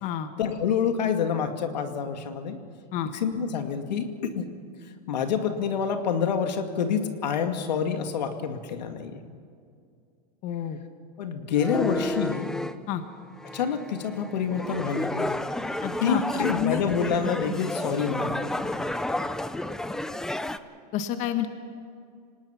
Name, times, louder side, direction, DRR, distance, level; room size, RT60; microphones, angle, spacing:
voice 1, 0.4-2.6 3.0-4.4 5.1-9.2 11.2-12.5 13.4-15.3 16.0-18.5, left 7 dB, 90° left, 6 dB, 2.3 m, -27 dB
voice 2, 10.4-10.8 12.9-13.0 15.8-16.8 20.9-21.5, left 10 dB, 35° left, 9 dB, 1.2 m, -29 dB
sound 1, 11.5-12.7 13.4-20.6, left 1 dB, 5° left, 0.4 m, -31 dB
25.5 x 19.0 x 5.9 m, 2.3 s
supercardioid pair, 145°, 21 cm